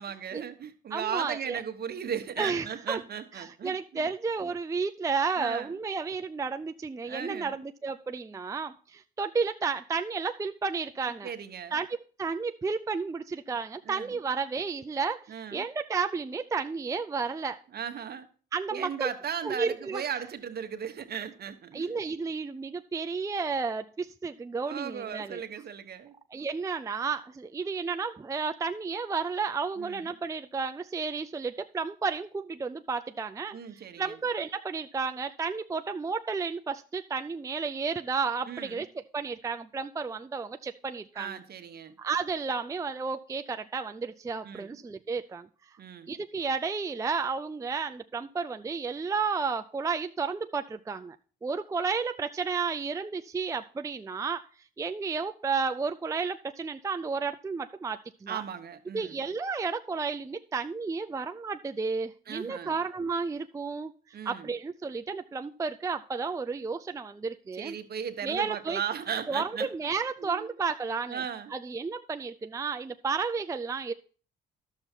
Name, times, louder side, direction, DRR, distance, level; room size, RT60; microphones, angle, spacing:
voice 1, 0.0-4.1 5.4-5.8 7.0-7.6 11.2-11.8 13.8-14.2 15.3-15.7 17.7-18.3 18.7-21.9 24.7-26.1 29.8-30.1 33.5-34.2 38.5-38.8 41.1-41.9 44.4-44.8 45.8-46.1 58.3-59.2 62.3-62.8 64.1-64.5 67.5-69.9 70.2-70.7 71.1-71.5, right 8 dB, 50° right, 8 dB, 1.1 m, -37 dB
voice 2, 0.9-1.6 2.4-3.0 3.3-11.3 11.7-11.9 12.2-17.6 18.5-19.1 19.5-20.0 21.7-25.4 26.3-41.4 42.0-45.5 46.1-51.2 51.4-54.4 54.8-58.4 58.9-67.8 68.2-68.8 69.3-71.2 71.5-73.9, right 5 dB, 15° right, 7 dB, 0.4 m, -32 dB
11.5 x 6.8 x 4.4 m, 0.41 s
cardioid pair, 90°, 20 cm